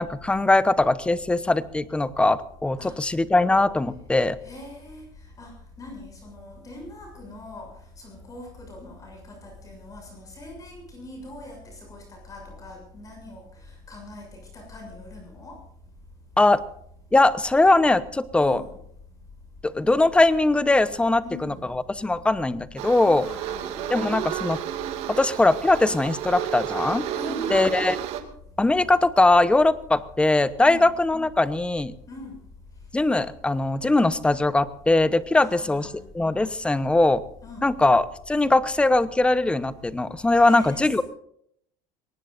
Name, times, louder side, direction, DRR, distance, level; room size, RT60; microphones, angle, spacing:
voice 1, 0.0-4.4 16.4-16.6 17.1-18.6 19.6-23.2 23.9-24.6 25.1-27.1 27.5-28.0 28.6-31.9 32.9-37.2 37.6-41.0, left 2 dB, 10° left, 14 dB, 0.9 m, -21 dB
voice 2, 4.4-7.7 8.0-15.6 18.3-18.8 21.2-21.7 23.0-23.9 27.1-27.9 30.6-30.9 32.1-32.4 35.3-36.0 37.4-37.7 40.4-41.0, left 2 dB, 30° left, 2 dB, 6.8 m, -42 dB
sound 1, 22.8-28.2, right 10 dB, 65° right, 2.3 m, -31 dB
23.0 x 19.0 x 2.6 m, 0.69 s
cardioid pair, 125°, 12 cm